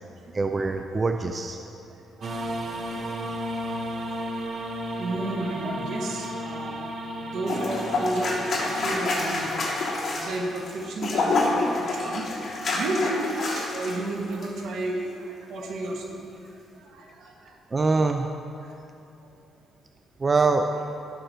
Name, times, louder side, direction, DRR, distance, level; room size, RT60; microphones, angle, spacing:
voice 1, 0.3-1.6 17.7-18.3 20.2-20.7, right 3 dB, 30° right, 5 dB, 0.6 m, -23 dB
sound 1, 2.2-8.8, equal, 50° right, 1.4 m, -33 dB
voice 2, 2.9-3.6 3.9-4.2 5.0-6.7 7.2-9.5 10.2-12.3 12.7-16.1 16.7-17.6 18.6-18.7, right 2 dB, 75° right, -1 dB, 2.0 m, -32 dB
sound 2, 7.5-14.0 14.3-14.5, left 2 dB, 40° left, 3.2 m, -27 dB
18.0 x 6.5 x 4.6 m, 2.6 s
cardioid pair, 90°, 0 cm